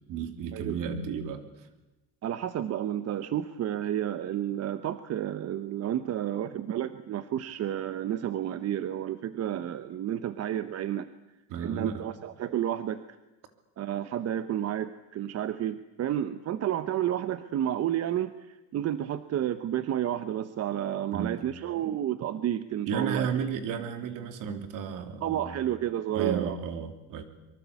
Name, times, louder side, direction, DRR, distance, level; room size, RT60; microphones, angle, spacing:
voice 1, 0.1-1.7 11.5-12.0 21.1-21.4 22.9-25.6 26.1-27.2, right 7 dB, 65° right, 8 dB, 3.2 m, -33 dB
voice 2, 2.2-11.1 11.6-13.0 13.8-23.3 25.2-26.6, right 11 dB, 45° right, 12 dB, 1.0 m, -31 dB
24.5 x 23.5 x 8.4 m, 1.0 s
cardioid pair, 140°, 35 cm